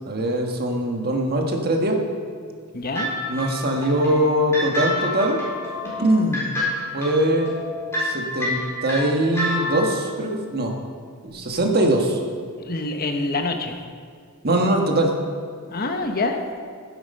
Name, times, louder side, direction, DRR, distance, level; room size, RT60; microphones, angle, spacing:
voice 1, 0.1-2.0 3.3-5.4 6.0-6.5 6.9-7.5 8.0-10.7 11.2-12.2 14.4-15.1, right 1 dB, 45° right, 2 dB, 1.5 m, -22 dB
voice 2, 2.7-3.1 12.6-13.8 15.7-16.4, left 2 dB, 45° left, 5 dB, 1.0 m, -26 dB
sound 1, 2.9-10.0, left 1 dB, 10° left, 3.9 m, -28 dB
15.5 x 8.1 x 5.5 m, 2.1 s
head